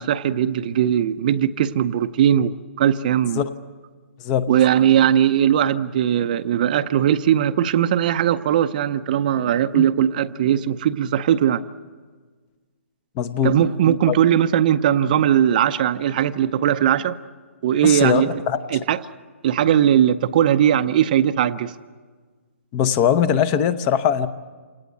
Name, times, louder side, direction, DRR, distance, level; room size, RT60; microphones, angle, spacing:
voice 1, 0.0-3.4 4.5-11.6 13.4-17.2 17.6-18.4 18.7-19.0 19.4-21.7, right 10 dB, 35° right, 12 dB, 0.6 m, -19 dB
voice 2, 13.2-13.5 14.1-14.2 17.8-18.6 22.7-24.3, left 8 dB, 20° left, 14 dB, 0.7 m, -20 dB
28.0 x 18.5 x 8.0 m, 1.5 s
hypercardioid pair, 160°, 8 cm